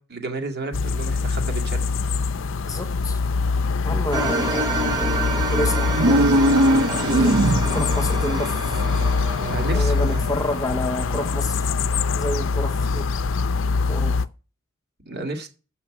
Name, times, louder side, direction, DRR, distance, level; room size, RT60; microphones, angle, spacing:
voice 1, 0.0-2.2 7.7-7.8 8.3-8.5 9.3-10.3 15.1-15.5, right 2 dB, 50° right, 1.9 m, -32 dB
sound 1, 0.7-14.3, left 4 dB, 65° left, 0.5 m, -24 dB
voice 2, 2.7-3.2 3.8-4.9 5.3-6.3 7.1-7.4 7.7-8.8 9.7-11.7 12.1-13.1 13.9-14.2, left 1 dB, 15° left, 0.6 m, -29 dB
sound 2, 4.1-11.3, right 1 dB, 20° right, 1.3 m, -28 dB
sound 3, 5.9-7.9, right 1 dB, 85° right, 0.7 m, -19 dB
7.4 x 5.6 x 7.3 m
head